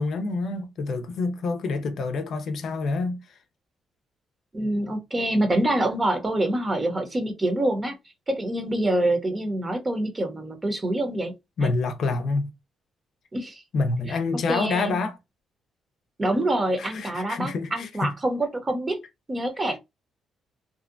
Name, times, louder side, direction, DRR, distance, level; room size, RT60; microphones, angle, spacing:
voice 1, 0.0-3.2 11.6-12.5 13.7-15.2 16.8-18.1, left 3 dB, 65° left, 0.5 m, -27 dB
voice 2, 4.5-8.0 8.3-11.3 11.6-11.7 13.3-13.6 14.5-15.0 16.2-19.0 19.3-19.8, right 1 dB, 25° right, 0.8 m, -26 dB
2.7 x 2.2 x 2.4 m
cardioid pair, 90°, 0 cm